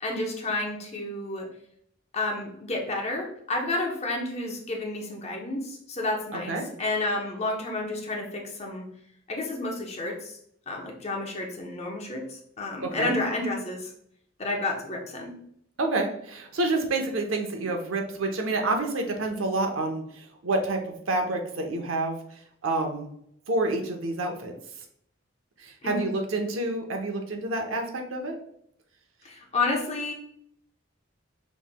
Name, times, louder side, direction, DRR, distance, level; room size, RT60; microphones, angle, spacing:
voice 1, 0.0-1.5 2.1-8.9 9.3-10.4 10.7-13.9 14.4-15.3 25.8-26.1 29.2-30.1, left 2 dB, 35° left, 1 dB, 0.8 m, -30 dB
voice 2, 6.3-6.7 12.8-13.2 15.8-23.1 23.5-24.5 25.6-28.4, right 2 dB, 90° right, 3 dB, 0.8 m, -28 dB
5.4 x 3.1 x 2.2 m, 0.69 s
head